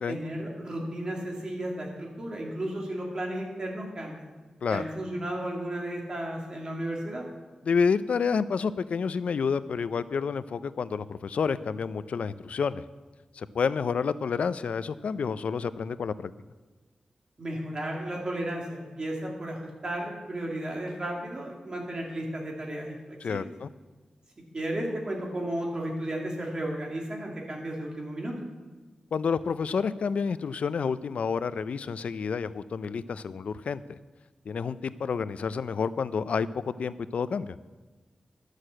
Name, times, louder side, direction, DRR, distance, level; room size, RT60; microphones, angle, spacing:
voice 1, 0.1-4.3 4.7-7.2 17.4-23.5 24.5-28.3, right 1 dB, 40° right, -1 dB, 2.4 m, -34 dB
voice 2, 7.6-12.8 13.4-16.3 23.2-23.7 29.1-34.0 34.5-37.6, left 5 dB, 75° left, 15 dB, 0.4 m, -29 dB
11.5 x 6.5 x 7.6 m, 1.3 s
wide cardioid pair, 140°, 2 cm